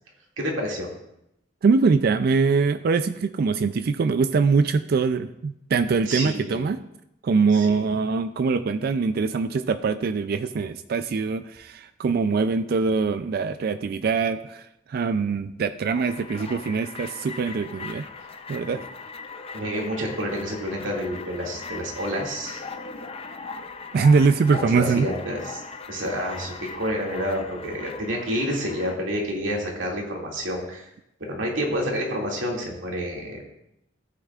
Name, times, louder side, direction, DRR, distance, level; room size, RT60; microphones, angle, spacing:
voice 1, 0.4-0.9 6.1-6.7 7.5-7.9 18.7-18.8 19.5-22.6 24.5-25.6 25.9-30.9 31.2-33.4, equal, 90° right, -1 dB, 2.3 m, -29 dB
voice 2, 1.6-6.8 7.2-14.6 14.9-18.0 18.5-18.8 23.9-25.1, right 4 dB, 55° right, 11 dB, 0.4 m, -23 dB
sound 1, 15.9-29.0, left 4 dB, 30° left, 0.6 m, -39 dB
13.5 x 9.0 x 2.4 m, 0.83 s
head